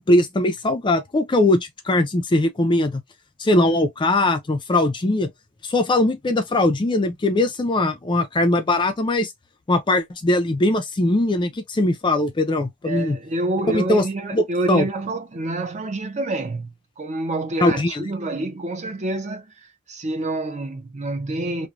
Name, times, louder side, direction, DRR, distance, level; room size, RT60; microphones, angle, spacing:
voice 1, 0.1-3.0 3.4-5.3 5.6-9.3 9.7-13.2 13.7-14.0 14.3-14.9 17.6-18.1, left 1 dB, 20° left, 0.4 m, -20 dB
voice 2, 12.8-19.5 19.9-21.7, right 2 dB, 30° right, 0.5 m, -27 dB
3.0 x 2.1 x 2.4 m
head